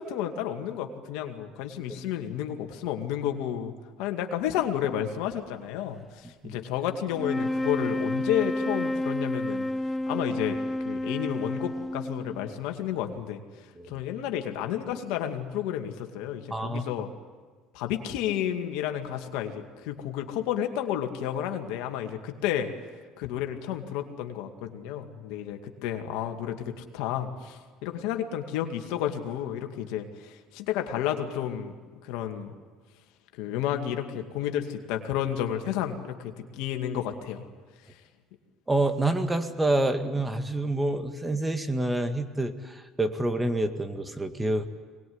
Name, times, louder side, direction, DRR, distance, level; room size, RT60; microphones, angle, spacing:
voice 1, 0.0-3.7 4.0-9.7 10.1-10.6 10.9-13.4 13.9-17.1 17.7-22.7 23.2-31.7 32.0-32.5 33.3-37.5, left 10 dB, 75° left, 5 dB, 2.3 m, -31 dB
sound 1, 7.1-12.6, left 1 dB, 15° left, 0.9 m, -30 dB
voice 2, 16.5-16.8 38.7-44.7, right 2 dB, 15° right, 7 dB, 2.0 m, -27 dB
24.0 x 20.5 x 9.7 m, 1.5 s
supercardioid pair, 85°, 0 cm